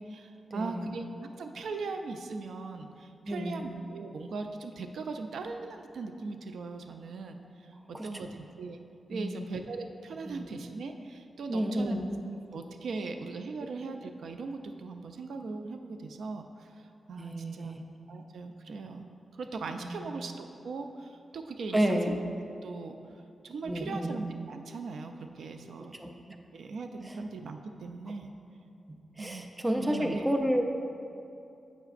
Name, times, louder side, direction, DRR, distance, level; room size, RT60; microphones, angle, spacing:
voice 1, 0.0-7.4 7.9-8.8 9.1-12.0 12.5-17.7 18.1-19.1 19.3-22.2 22.6-23.0 23.4-25.9 26.5-28.3 29.2-29.5 29.7-30.2, right 3 dB, 80° right, 6 dB, 0.3 m, -39 dB
voice 2, 0.5-0.9 3.2-3.7 7.8-8.3 9.1-9.5 10.3-10.6 11.5-12.1 17.2-17.8 19.8-20.1 21.7-22.2 23.6-24.2 26.0-26.1 27.0-27.2 28.9-30.6, equal, 15° right, 4 dB, 0.4 m, -31 dB
8.0 x 5.8 x 2.4 m, 2.7 s
wide cardioid pair, 130°, 0 cm